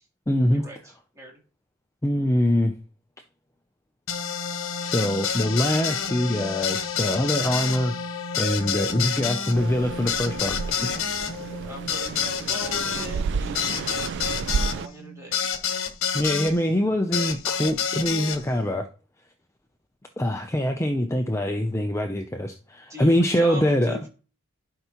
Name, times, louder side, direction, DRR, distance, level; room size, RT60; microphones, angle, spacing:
voice 1, 0.3-0.7 2.0-2.8 4.8-11.0 16.1-18.9 20.2-24.1, equal, 15° left, 5 dB, 0.5 m, -24 dB
sound 1, 4.1-16.5 17.1-18.4, left 7 dB, 65° left, 1.1 m, -29 dB
Orkney Brough of Birsay C, 9.5-14.9, right 5 dB, 55° right, 0.3 m, -31 dB
voice 2, 11.6-14.1 14.7-15.5 22.9-23.1 23.4-24.1, right 1 dB, 15° right, -2 dB, 3.0 m, -40 dB
11.5 x 5.6 x 3.0 m, 0.36 s
head